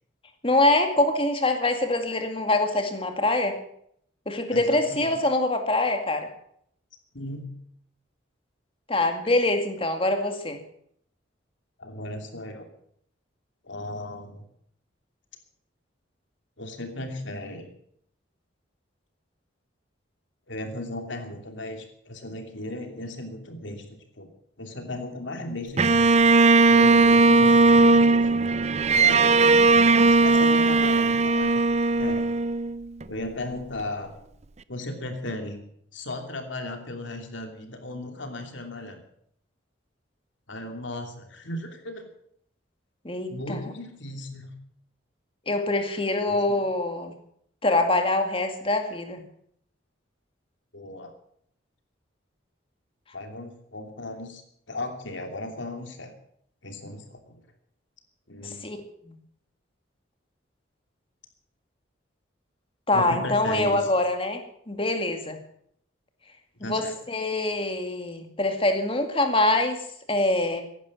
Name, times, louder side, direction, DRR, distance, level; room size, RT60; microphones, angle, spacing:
voice 1, 0.4-3.6 4.3-6.3 8.9-10.6 43.0-43.6 45.5-47.1 47.6-49.2 58.4-58.8 59.1-59.2 62.9-65.4 66.6-69.8 70.1-70.6, left 2 dB, 30° left, 6 dB, 2.1 m, -24 dB
voice 2, 4.5-5.2 7.1-7.5 11.8-12.7 13.6-14.4 16.6-17.7 20.5-24.3 24.6-26.3 26.7-28.5 28.9-29.3 30.0-32.3 33.1-34.1 34.7-35.6 35.9-39.0 40.5-42.1 43.3-44.5 46.3-46.6 50.7-51.1 53.1-54.4 54.7-56.1 56.6-57.4 58.3-58.7 62.9-63.9 66.6-66.9, left 1 dB, 75° left, 5 dB, 2.9 m, -36 dB
Bowed string instrument, 25.8-33.0, right 3 dB, 35° right, 0.6 m, -18 dB
16.0 x 11.0 x 7.2 m, 0.68 s
head